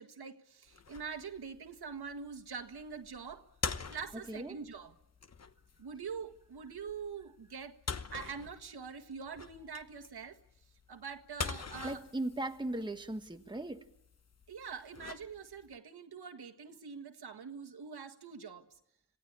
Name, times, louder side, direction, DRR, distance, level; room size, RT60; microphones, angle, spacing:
voice 1, 0.0-3.4 3.9-4.9 5.8-7.8 8.1-10.4 10.9-12.0 14.5-18.7, right 6 dB, 65° right, 1.7 m, -44 dB
sound 1, 0.7-15.8, left 5 dB, 40° left, 1.1 m, -45 dB
voice 2, 11.8-13.8, right 1 dB, 10° right, 1.3 m, -38 dB
27.0 x 17.0 x 8.8 m
wide cardioid pair, 85°, 41 cm